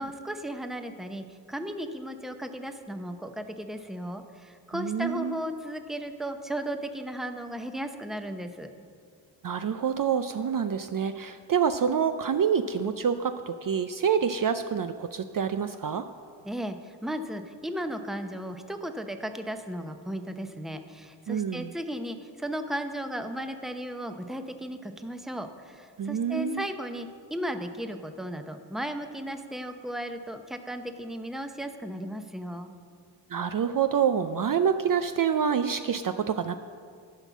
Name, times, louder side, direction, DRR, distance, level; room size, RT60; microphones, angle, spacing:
voice 1, 0.0-8.7 16.4-32.7, equal, ahead, 7 dB, 0.8 m, -35 dB
voice 2, 4.7-5.4 9.4-16.1 21.3-21.7 26.0-26.6 33.3-36.6, right 7 dB, 50° right, 9 dB, 0.5 m, -27 dB
11.0 x 5.5 x 7.3 m, 2.2 s
cardioid pair, 45°, 45 cm